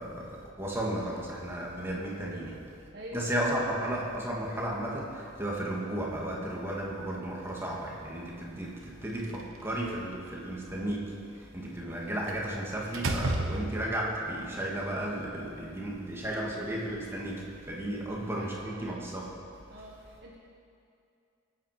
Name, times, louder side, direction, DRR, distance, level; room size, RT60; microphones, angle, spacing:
voice 1, 0.0-2.6 3.1-19.4, right 1 dB, 10° right, -3 dB, 2.2 m, -34 dB
voice 2, 2.9-3.3 18.1-19.0 19.7-20.3, equal, 55° right, -3 dB, 1.7 m, -46 dB
Slam, 9.1-10.1 12.3-12.5 12.9-14.2, right 2 dB, 85° right, 1.2 m, -32 dB
23.5 x 9.4 x 5.1 m, 2.5 s
head